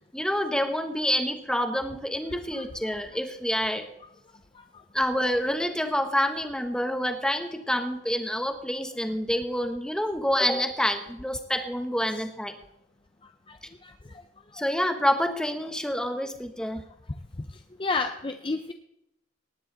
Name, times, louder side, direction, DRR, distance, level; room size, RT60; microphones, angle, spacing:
voice 1, 0.1-3.9 4.9-12.5 14.5-16.8, equal, 5° left, 7 dB, 1.1 m, -27 dB
voice 2, 2.5-2.9 13.5-13.6 13.8-13.9 17.8-18.7, left 3 dB, 25° left, 6 dB, 0.6 m, -30 dB
18.5 x 9.5 x 4.0 m, 0.81 s
head